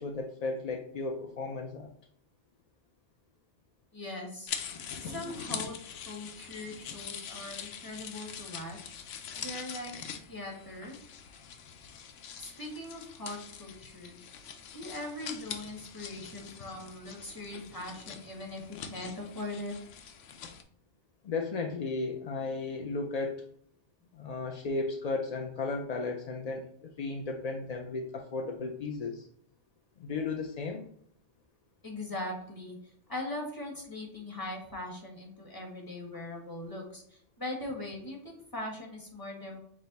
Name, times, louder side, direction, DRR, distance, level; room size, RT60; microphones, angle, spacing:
voice 1, 0.0-1.9 21.2-23.4 24.1-29.2 30.0-30.8, left 3 dB, 60° left, 2 dB, 0.4 m, -35 dB
voice 2, 3.9-4.5 5.0-5.8 6.0-8.9 9.4-9.9 10.3-11.0 12.4-14.2 14.7-19.7 31.8-39.6, left 1 dB, 20° left, -1 dB, 1.3 m, -40 dB
sound 1, 4.5-20.6, left 7 dB, 85° left, 0.9 m, -43 dB
6.2 x 2.1 x 4.0 m, 0.64 s
omnidirectional pair, 1.2 m